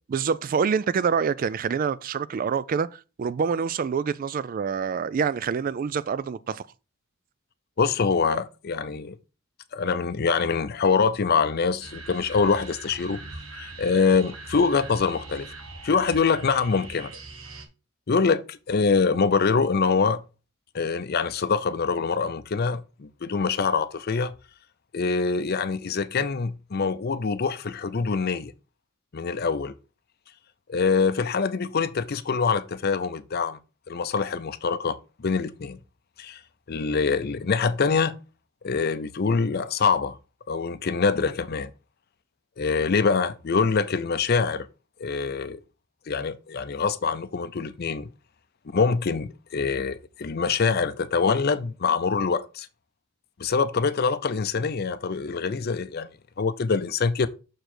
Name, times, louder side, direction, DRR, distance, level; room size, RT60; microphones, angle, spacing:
voice 1, 0.1-6.7, right 6 dB, 45° right, 0.3 m, -26 dB
voice 2, 7.8-9.2 9.7-13.2 13.5-15.5 15.8-17.1 18.1-20.2 20.7-24.3 24.9-28.5 29.1-29.7 30.7-33.6 33.9-35.8 36.2-36.4 36.7-38.1 38.6-40.2 40.5-41.7 42.6-44.7 45.0-45.6 46.1-48.1 48.7-52.7 53.4-56.1 56.4-57.3, left 5 dB, 50° left, 0.5 m, -24 dB
sound 1, 11.8-17.7, right 3 dB, 90° right, 1.4 m, -41 dB
6.4 x 4.6 x 4.3 m
head